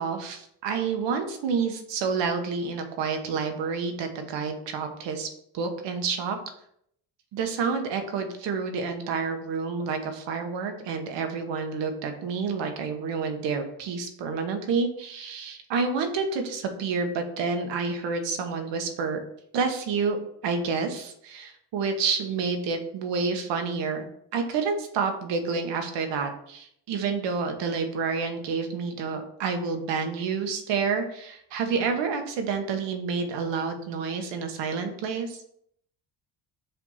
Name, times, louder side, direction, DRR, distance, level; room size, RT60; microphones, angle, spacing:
voice 1, 0.0-5.3 5.5-6.4 7.3-19.2 19.5-20.2 20.4-24.0 24.3-35.4, right 5 dB, 85° right, 5 dB, 1.2 m, -29 dB
5.7 x 3.6 x 5.6 m, 0.70 s
cardioid pair, 125°, 42 cm